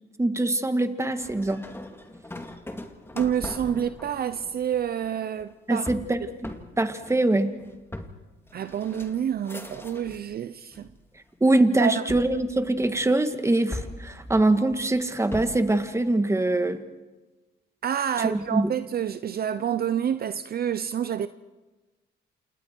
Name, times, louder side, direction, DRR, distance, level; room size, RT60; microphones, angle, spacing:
voice 1, 0.2-1.6 5.7-6.2 6.8-7.5 11.4-16.8 18.2-18.7, right 2 dB, 15° right, 1.8 m, -23 dB
sound 1, 1.2-10.3 10.7-11.4 12.1-13.2 13.7-15.8, left 1 dB, 10° left, 2.2 m, -40 dB
voice 2, 3.1-5.9 8.5-10.9 11.8-12.1 17.8-21.3, right 9 dB, 50° right, 0.7 m, -28 dB
28.0 x 28.0 x 4.6 m
cardioid pair, 90°, 20 cm